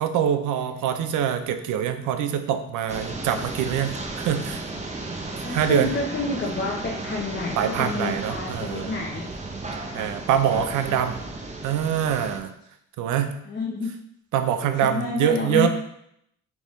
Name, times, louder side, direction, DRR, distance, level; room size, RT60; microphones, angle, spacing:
voice 1, 0.0-4.6 5.5-5.9 7.6-9.0 9.9-11.2 11.6-12.5 13.0-13.3 14.3-15.7, right 9 dB, 80° right, 9 dB, 0.5 m, -24 dB
sound 1, 2.9-12.4, right 2 dB, 25° right, 0.7 m, -34 dB
voice 2, 5.4-9.3 9.9-10.1 13.5-13.9 14.8-15.7, left 3 dB, 35° left, -2 dB, 0.7 m, -29 dB
3.9 x 3.5 x 3.0 m, 0.74 s
cardioid pair, 90°, 30 cm